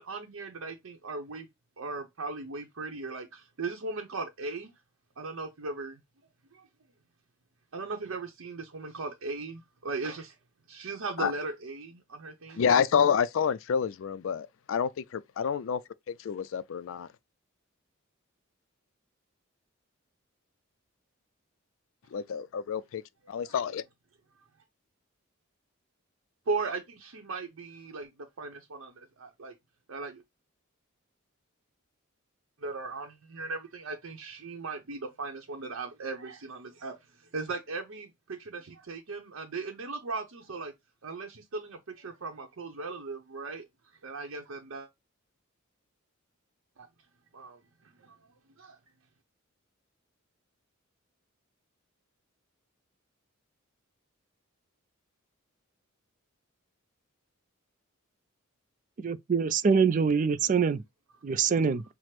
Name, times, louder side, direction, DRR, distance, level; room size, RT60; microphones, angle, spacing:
voice 1, 0.0-1.5 1.8-4.7 5.2-6.0 6.5-6.7 7.7-10.3 10.7-12.6 23.4-23.5 26.5-28.1 28.4-29.5 29.9-30.2 32.6-36.9 37.3-40.7 41.0-43.7 44.0-44.9 46.8-46.9 47.3-48.2 48.6-48.8, right 3 dB, 70° right, 0.7 m, -38 dB
voice 2, 12.6-15.8 16.1-17.1 22.1-23.0 23.3-23.8, left 7 dB, 65° left, 0.3 m, -28 dB
voice 3, 59.0-60.8 61.2-61.8, right 6 dB, 35° right, 0.3 m, -25 dB
5.8 x 2.0 x 3.1 m
head